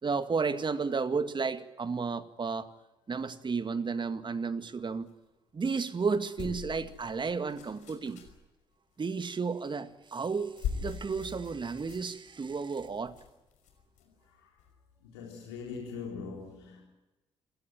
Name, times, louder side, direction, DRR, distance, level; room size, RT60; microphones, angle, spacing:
voice 1, 0.0-2.7 3.1-5.1 5.5-8.2 9.0-10.5 10.8-13.1, right 5 dB, 35° right, 2.0 m, -32 dB
sound 1, 6.4-8.4 9.9-10.1 10.4-14.0 14.6-14.7, left 7 dB, 65° left, 5.6 m, -41 dB
voice 2, 15.1-16.9, left 5 dB, 80° left, 4.0 m, -41 dB
27.5 x 17.5 x 9.2 m
hypercardioid pair, 45°, 14 cm